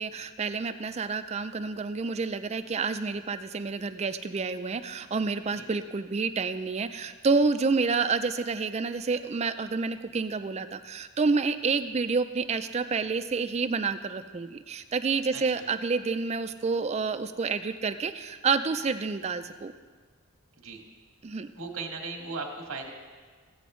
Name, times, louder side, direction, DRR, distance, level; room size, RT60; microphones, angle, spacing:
voice 1, 0.0-19.7 21.2-21.5, right 4 dB, 30° right, 9 dB, 0.4 m, -29 dB
voice 2, 15.3-15.6 20.5-20.8 21.5-22.9, right 3 dB, 75° right, 1 dB, 1.4 m, -37 dB
16.0 x 7.8 x 3.1 m, 1.5 s
head